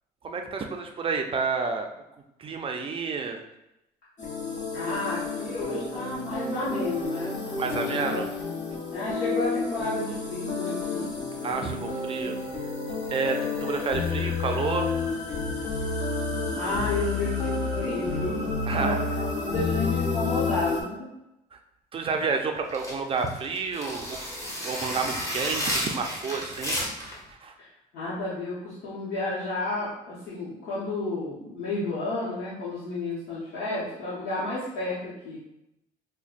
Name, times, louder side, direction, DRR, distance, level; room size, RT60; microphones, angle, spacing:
voice 1, 0.2-1.9 2.4-3.4 7.6-8.3 11.4-12.4 13.1-14.9 18.7-19.0 21.9-24.2 24.6-26.8 27.4-27.5, right 4 dB, 35° right, 4 dB, 0.4 m, -30 dB
sound 1, 4.2-20.8, left 4 dB, 45° left, 0.9 m, -30 dB
voice 2, 4.7-8.2 8.9-11.1 16.5-21.1 27.6-27.7 27.9-35.4, left 2 dB, 80° left, -9 dB, 1.0 m, -31 dB
sound 2, 22.7-27.2, equal, 20° left, 1.1 m, -32 dB
5.1 x 2.2 x 2.5 m, 0.88 s
cardioid pair, 110°, 17 cm